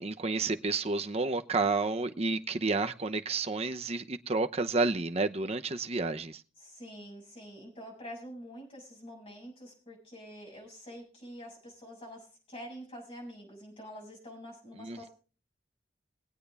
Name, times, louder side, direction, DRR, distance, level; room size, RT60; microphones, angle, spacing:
voice 1, 0.0-6.4 14.8-15.1, right 3 dB, 35° right, 0.7 m, -30 dB
voice 2, 6.6-15.1, equal, 30° left, 6.7 m, -46 dB
22.0 x 8.5 x 3.4 m
head